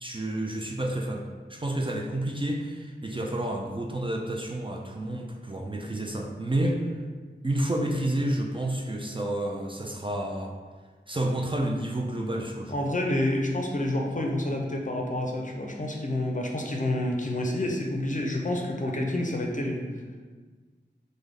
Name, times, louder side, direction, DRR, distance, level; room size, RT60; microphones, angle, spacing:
voice 1, 0.0-6.8 7.4-10.5 11.1-12.8, right 1 dB, 25° right, 1 dB, 0.3 m, -30 dB
voice 2, 12.7-19.8, left 1 dB, 40° left, 1 dB, 0.5 m, -28 dB
3.3 x 2.1 x 3.6 m, 1.4 s
wide cardioid pair, 40°, 19 cm